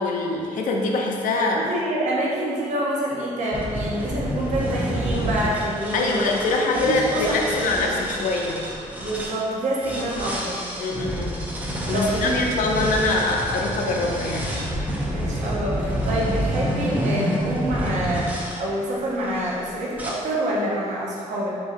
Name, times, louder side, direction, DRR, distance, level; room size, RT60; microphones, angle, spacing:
voice 1, 0.0-1.6 5.9-8.6 10.8-11.4 11.9-14.6, left 3 dB, 80° left, 0 dB, 0.5 m, -24 dB
voice 2, 1.5-6.3 6.7-8.0 9.0-10.6 11.9-13.0 15.1-21.6, right 1 dB, 65° right, -5 dB, 0.8 m, -27 dB
sound 1, 3.5-9.3 9.8-18.6 19.2-19.6 20.0-20.1, equal, 10° right, 0.6 m, -28 dB
5.4 x 2.7 x 2.5 m, 2.3 s
cardioid pair, 115°, 13 cm